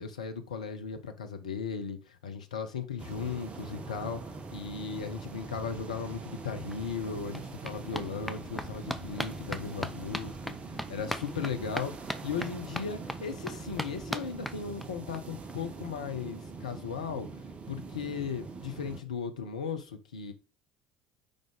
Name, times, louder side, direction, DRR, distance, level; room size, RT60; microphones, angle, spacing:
voice 1, 0.0-10.5 10.9-11.9 12.2-17.3 17.7-20.3, left 6 dB, 75° left, 0.8 m, -37 dB
sound 1, 3.0-19.0, right 4 dB, 35° right, 1.1 m, -43 dB
sound 2, 6.4-6.5 6.7-15.2 15.5-15.6 15.8-15.9 16.2-16.3, left 1 dB, 5° left, 0.7 m, -40 dB
5.2 x 5.2 x 3.5 m
figure-of-eight pair, 60°, 4 cm